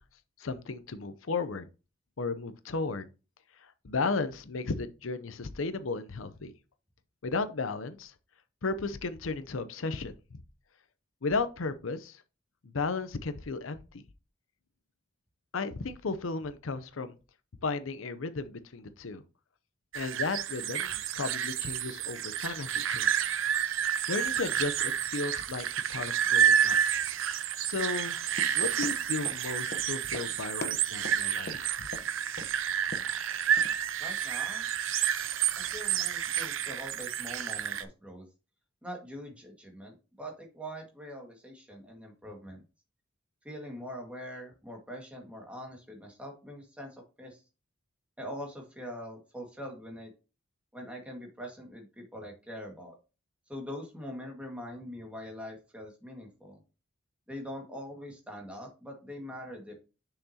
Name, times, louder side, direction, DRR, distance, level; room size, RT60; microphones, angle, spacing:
voice 1, 0.4-1.7 2.2-3.1 3.6-6.5 7.2-8.1 8.6-10.4 11.2-12.2 12.6-14.0 15.5-17.1 17.6-19.2 19.9-23.4 24.1-26.8 27.6-28.2 28.6-31.9, left 3 dB, 85° left, 0.7 m, -34 dB
sound 1, 19.9-37.8, right 9 dB, 80° right, 0.6 m, -30 dB
Run, 28.3-32.1 32.4-32.6 32.8-33.2 33.6-33.7, left 2 dB, 50° left, 1.0 m, -42 dB
voice 2, 34.0-34.7 35.6-38.3 38.8-42.6 43.4-47.4 48.2-50.1 50.7-53.0 53.5-56.6 57.3-59.8, equal, 5° right, 1.9 m, -43 dB
6.8 x 5.8 x 2.9 m
head